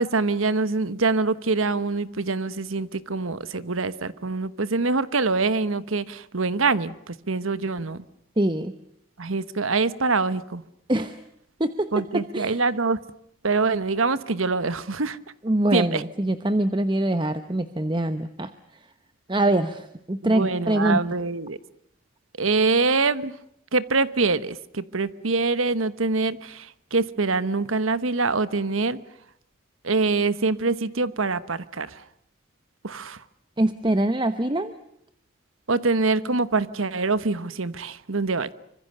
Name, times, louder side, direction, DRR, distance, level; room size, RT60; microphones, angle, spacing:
voice 1, 0.0-8.0 9.2-10.6 11.9-13.0 13.4-15.2 15.7-16.0 20.2-21.6 22.4-23.3 23.7-29.0 29.8-32.0 32.8-33.2 35.7-38.5, right 3 dB, 90° right, 15 dB, 1.2 m, -24 dB
voice 2, 8.4-8.7 10.9-11.2 11.6-12.6 15.4-18.5 19.3-21.0 33.6-34.7, right 1 dB, 25° right, 10 dB, 1.0 m, -24 dB
26.0 x 25.5 x 6.8 m, 0.76 s
head